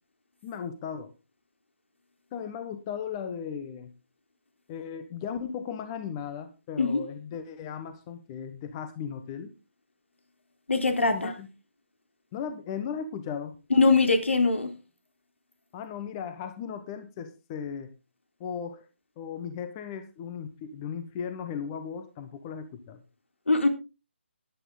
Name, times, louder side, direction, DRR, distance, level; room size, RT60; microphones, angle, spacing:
voice 1, 0.4-1.1 2.3-3.9 4.7-9.5 11.1-11.5 12.3-13.6 15.7-17.9 18.4-18.9 19.2-23.0, left 7 dB, 25° left, 1.2 m, -36 dB
voice 2, 10.7-11.3 13.7-14.7 23.5-23.7, left 3 dB, 75° left, 3.6 m, -22 dB
14.0 x 11.5 x 3.9 m
figure-of-eight pair, 150°, 7 cm